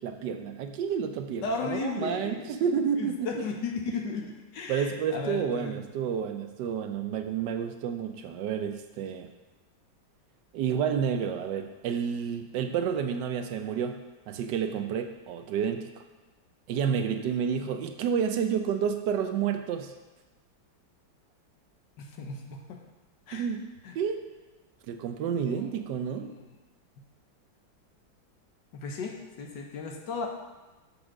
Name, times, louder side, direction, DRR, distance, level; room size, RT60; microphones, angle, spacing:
voice 1, 0.0-3.4 4.7-9.3 10.5-14.0 14.3-16.0 16.7-19.9 23.3-23.7 23.9-24.3 24.9-26.3, right 7 dB, 70° right, 7 dB, 1.1 m, -30 dB
voice 2, 1.4-2.6 3.0-5.9 22.0-22.8 23.3-23.4 23.8-23.9 25.3-25.7 26.2-26.5 28.7-30.3, left 4 dB, 65° left, 2 dB, 1.4 m, -35 dB
6.7 x 5.3 x 6.0 m, 1.2 s
omnidirectional pair, 2.1 m